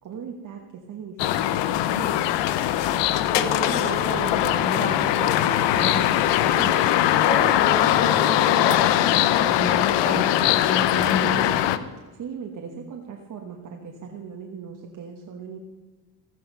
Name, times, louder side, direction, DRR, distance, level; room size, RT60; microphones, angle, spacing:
voice 1, 0.0-2.3 7.0-7.4 12.1-15.6, right 6 dB, 45° right, 1 dB, 1.4 m, -39 dB
sound 1, 1.2-11.8, left 13 dB, 70° left, 0.8 m, -21 dB
voice 2, 3.2-6.7 7.3-11.5, equal, 20° left, 0 dB, 4.4 m, -31 dB
14.0 x 9.1 x 5.5 m, 1.2 s
cardioid pair, 110°, 44 cm